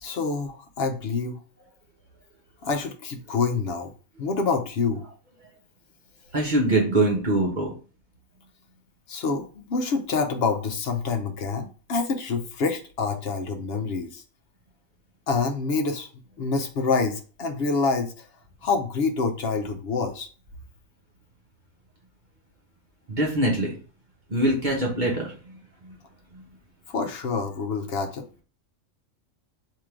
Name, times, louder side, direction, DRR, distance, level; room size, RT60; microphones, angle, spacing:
voice 1, 0.0-1.4 2.6-3.9 4.2-5.1 9.1-14.2 15.3-16.1 16.4-18.3 18.6-20.3 26.9-28.3, left 4 dB, 60° left, 5 dB, 0.8 m, -27 dB
voice 2, 6.3-7.7 23.1-23.7 24.3-25.6 25.8-25.9 26.3-26.4, right 1 dB, 40° right, -2 dB, 1.1 m, -23 dB
3.6 x 2.9 x 4.5 m, 0.38 s
omnidirectional pair, 1.3 m